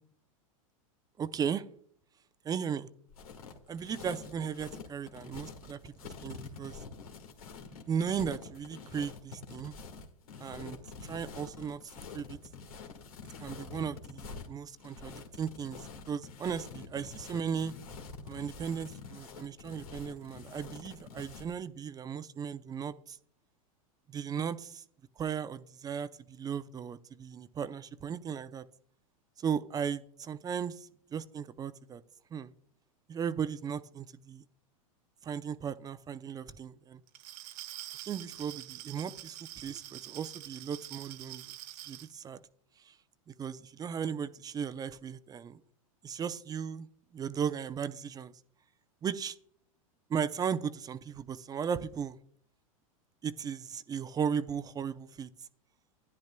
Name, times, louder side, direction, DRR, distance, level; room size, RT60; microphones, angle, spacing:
voice 1, 1.2-1.6 2.4-2.9 3.7-6.8 7.9-9.8 10.4-12.4 13.4-17.7 18.3-23.2 24.1-24.8 25.2-28.7 29.4-32.0 32.3-32.5 33.1-34.4 35.2-37.0 38.1-41.5 41.9-42.4 42.9-43.0 43.3-45.6 46.0-46.9 47.1-48.3 49.0-49.4 50.1-52.2 53.2-55.3, right 7 dB, 20° right, 14 dB, 0.5 m, -36 dB
sound 1, 3.1-21.5, left 5 dB, 85° left, 1.7 m, -47 dB
Glass, 37.1-42.1, right 15 dB, 45° right, 0.9 m, -46 dB
12.0 x 10.5 x 2.2 m, 0.62 s
hypercardioid pair, 110°, 18 cm